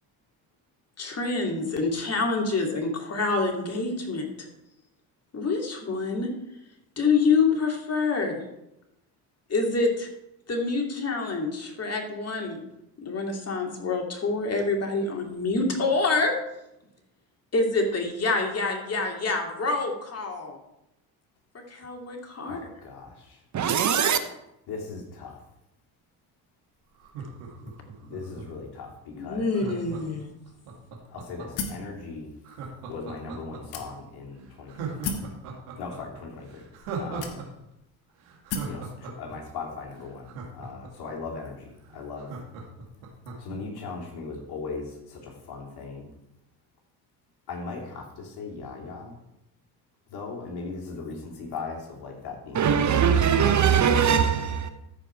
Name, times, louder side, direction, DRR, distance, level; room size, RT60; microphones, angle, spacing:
voice 1, 1.0-4.3 5.3-6.3 7.0-8.4 9.5-10.1 10.5-12.6 13.0-16.3 17.5-20.6 21.7-22.6 29.2-30.3, left 3 dB, 35° left, 2.6 m, -26 dB
voice 2, 22.5-23.4 24.7-25.4 28.1-29.5 31.1-32.3 32.9-35.2 35.8-36.6 36.9-37.4 38.6-42.3 43.4-46.1 47.5-49.1 50.1-53.4, left 4 dB, 60° left, 3.1 m, -38 dB
voice 3, 23.5-24.2 52.5-54.7, right 8 dB, 40° right, 0.8 m, -21 dB
Laughter, 27.0-28.7 29.5-31.7 32.4-33.8 34.2-34.3 34.7-37.5 37.7-37.8 38.2-41.1 41.5-41.6 41.8-43.6 44.0-44.1, right 4 dB, 80° right, 2.3 m, -38 dB
sound 1, 31.6-31.9 32.7-32.8 33.7-34.2 35.0-35.4 36.3-36.4 37.2-37.7 38.5-38.8, left 4 dB, 90° left, 1.2 m, -33 dB
13.5 x 5.2 x 4.6 m
supercardioid pair, 80°, 43 cm